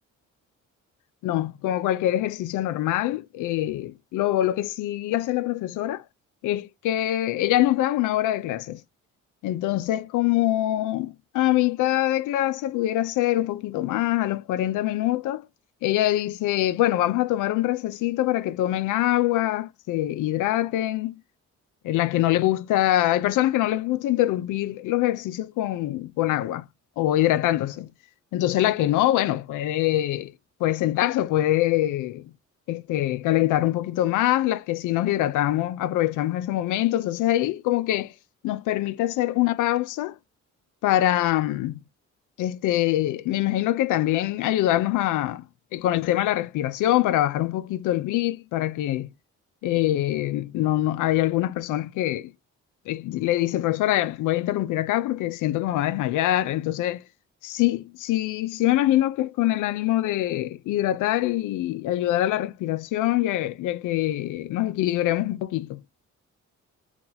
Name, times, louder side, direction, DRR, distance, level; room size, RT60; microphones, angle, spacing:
voice 1, 1.2-6.0 6.4-8.8 9.4-15.4 15.8-21.2 21.8-26.6 27.0-27.9 28.3-30.3 30.6-32.3 32.7-38.1 38.4-40.2 40.8-41.8 42.4-45.4 45.7-49.1 49.6-52.3 52.9-57.0 57.4-65.8, left 14 dB, 80° left, 0.5 m, -24 dB
2.9 x 2.4 x 4.0 m
cardioid pair, 90°, 30 cm